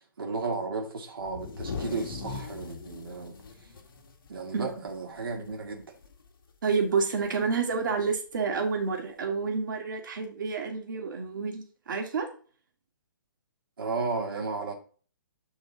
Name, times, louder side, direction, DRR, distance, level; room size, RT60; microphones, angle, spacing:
voice 1, 0.0-3.4 4.3-5.8 13.8-14.7, right 4 dB, 90° right, 2.0 m, -34 dB
sound 1, 1.2-5.0 5.3-5.5 5.8-6.3 7.4-7.5 8.5-8.6, left 4 dB, 90° left, 1.7 m, -39 dB
voice 2, 6.6-12.3, right 5 dB, 65° right, 2.1 m, -29 dB
7.3 x 5.5 x 4.0 m
hypercardioid pair, 150°, 11 cm